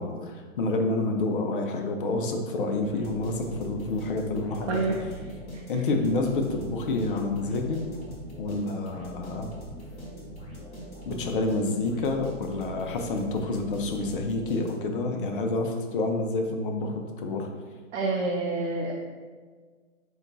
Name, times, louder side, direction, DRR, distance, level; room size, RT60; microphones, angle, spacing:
voice 1, 0.0-4.7 5.7-7.8 8.4-9.5 11.0-17.5, left 2 dB, 40° left, 3 dB, 0.5 m, -28 dB
sound 1, 2.9-15.0, equal, 15° left, 1.1 m, -42 dB
voice 2, 4.7-5.0 5.5-5.6 11.1-11.2 17.9-19.1, right 3 dB, 60° right, -1 dB, 0.6 m, -28 dB
4.3 x 2.3 x 3.8 m, 1.5 s
hypercardioid pair, 145°, 41 cm